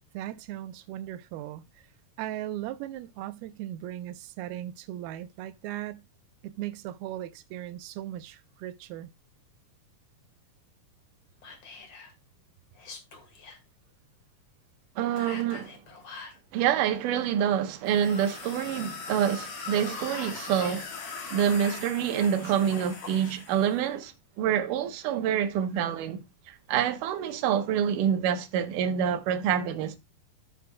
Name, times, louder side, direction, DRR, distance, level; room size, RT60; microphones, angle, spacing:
voice 1, 0.1-1.9 2.2-6.0 6.4-9.1, right 13 dB, 90° right, 2.6 m, -38 dB
Whispering, 11.4-12.1 12.7-13.6 15.1-16.4 19.5-21.3 22.1-23.4, left 4 dB, 45° left, 2.6 m, -46 dB
voice 2, 15.0-15.8 16.5-20.9 21.3-30.0, right 9 dB, 65° right, 2.5 m, -27 dB
sound 1, 17.9-23.8, left 5 dB, 75° left, 3.8 m, -40 dB
14.5 x 6.0 x 2.3 m
omnidirectional pair, 4.3 m